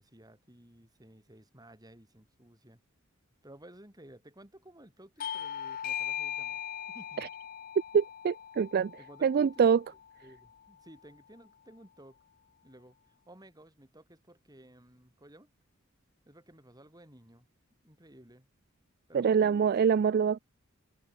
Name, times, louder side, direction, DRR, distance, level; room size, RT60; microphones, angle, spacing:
voice 1, 0.0-2.8 3.4-6.6 6.9-7.3 9.0-12.2 12.6-13.0 13.3-15.5 16.3-17.5 17.8-18.5 19.1-19.9, right 1 dB, 20° right, 5.3 m, -55 dB
Bell / Doorbell, 5.2-10.3, left 9 dB, 45° left, 0.4 m, -39 dB
voice 2, 7.9-8.9 9.2-9.8 19.1-20.4, right 6 dB, 50° right, 0.3 m, -25 dB
head